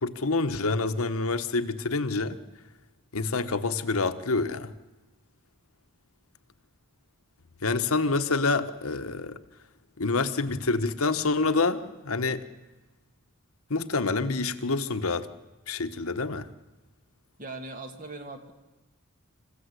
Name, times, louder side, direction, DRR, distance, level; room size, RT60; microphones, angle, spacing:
voice 1, 0.0-2.4 3.1-4.7 7.6-9.4 10.0-12.4 13.7-15.3 15.7-16.5, left 3 dB, 90° left, 1.3 m, -27 dB
voice 2, 17.4-18.5, right 2 dB, 40° right, 2.1 m, -40 dB
27.0 x 16.0 x 8.3 m
head